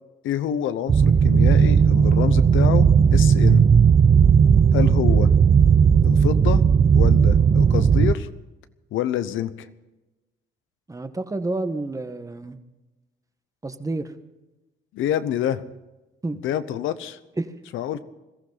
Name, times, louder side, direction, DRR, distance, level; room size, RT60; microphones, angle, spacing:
voice 1, 0.2-3.7 4.7-5.3 6.0-6.6 6.9-8.3 8.9-9.7 14.9-15.6 16.4-17.2 17.7-18.0, left 10 dB, 85° left, 13 dB, 0.9 m, -27 dB
sound 1, 0.9-8.1, right 6 dB, 30° right, 0.6 m, -16 dB
voice 2, 10.9-12.6 13.6-14.1 16.2-16.4 17.4-17.5, right 2 dB, 15° right, 9 dB, 1.2 m, -29 dB
21.5 x 14.5 x 4.0 m, 1.1 s
cardioid pair, 90°, 20 cm